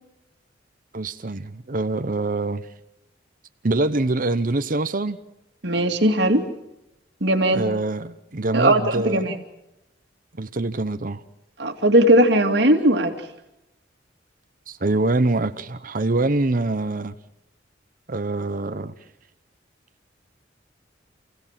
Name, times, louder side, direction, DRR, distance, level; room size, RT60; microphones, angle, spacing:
voice 1, 0.9-2.6 3.6-5.2 7.5-9.3 10.4-11.2 14.7-17.1 18.1-18.9, right 2 dB, 50° right, 0.9 m, -24 dB
voice 2, 5.6-6.4 7.2-7.7 8.5-9.4 11.6-13.1, right 1 dB, 65° right, 2.6 m, -18 dB
28.5 x 16.5 x 7.5 m
head